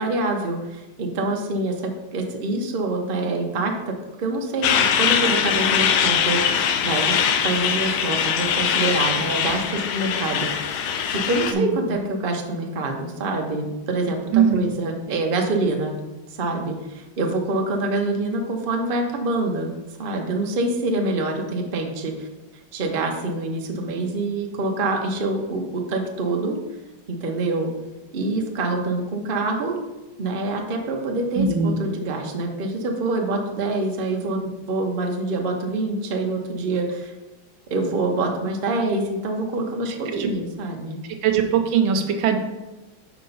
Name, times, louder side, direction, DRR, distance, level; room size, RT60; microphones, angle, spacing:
voice 1, 0.0-10.8 11.1-15.9 16.4-19.7 20.0-22.3 22.7-26.6 27.1-27.7 28.1-29.8 30.2-37.1 37.7-41.0, right 2 dB, 50° right, 2 dB, 0.6 m, -26 dB
Truck, 4.6-11.5, left 8 dB, 80° left, 1.4 m, -22 dB
voice 2, 11.5-11.9 14.3-14.6 31.3-31.8 40.1-40.3 41.2-42.4, right 6 dB, 75° right, 6 dB, 1.4 m, -20 dB
5.8 x 4.6 x 5.4 m, 1.1 s
omnidirectional pair, 2.3 m